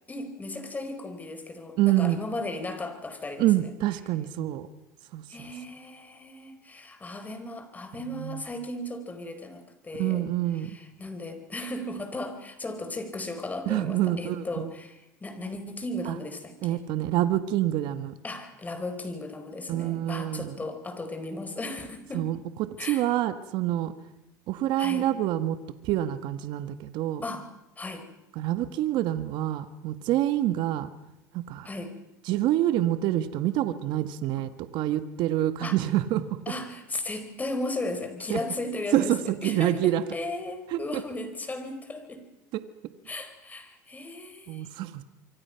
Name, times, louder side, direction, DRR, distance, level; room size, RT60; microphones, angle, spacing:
voice 1, 0.1-3.5 5.3-10.3 10.6-16.8 18.2-22.3 22.8-23.0 24.8-25.1 27.2-27.4 27.8-28.1 31.6-31.9 34.4-34.5 35.6-35.8 36.5-42.2 43.1-44.7, left 2 dB, 20° left, 8 dB, 4.4 m, -36 dB
voice 2, 1.8-2.2 3.4-4.7 5.1-5.5 8.1-8.4 9.9-10.8 13.6-14.7 16.0-16.2 16.6-18.1 19.7-20.6 22.1-23.9 24.5-25.6 25.8-27.2 28.3-30.9 31.3-31.7 32.2-36.4 38.3-38.4 38.9-40.0 40.7-41.0 44.5-45.0, right 13 dB, 60° right, 11 dB, 1.5 m, -27 dB
26.5 x 24.0 x 5.8 m, 0.91 s
supercardioid pair, 95°, 9 cm